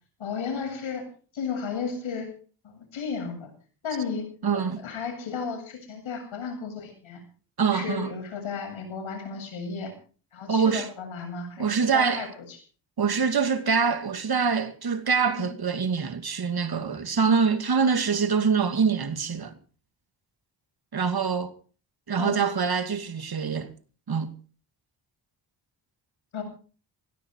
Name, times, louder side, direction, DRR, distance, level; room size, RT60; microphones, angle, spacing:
voice 1, 0.2-1.1 1.3-2.3 2.6-3.5 3.8-7.2 7.7-9.9 10.3-12.6 15.4-15.5 22.2-22.4 26.3-26.4, left 5 dB, 75° left, 7.8 m, -34 dB
voice 2, 4.4-4.8 7.6-8.1 10.5-10.9 11.6-12.3 13.0-19.5 20.9-21.5 22.1-23.7 24.1-24.3, right 6 dB, 50° right, 2.5 m, -24 dB
17.0 x 16.0 x 4.8 m
supercardioid pair, 55°, 47 cm